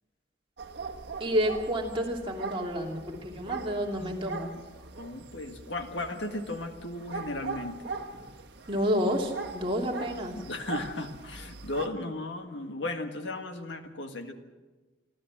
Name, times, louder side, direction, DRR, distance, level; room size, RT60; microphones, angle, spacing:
sound 1, 0.6-11.9, right 4 dB, 55° right, 1.5 m, -41 dB
voice 1, 1.2-4.5 8.7-10.4, equal, 25° right, 0 dB, 2.8 m, -29 dB
voice 2, 4.0-4.6 5.0-7.9 10.4-14.3, left 2 dB, 65° left, 6 dB, 1.8 m, -36 dB
27.0 x 12.5 x 7.5 m, 1.3 s
head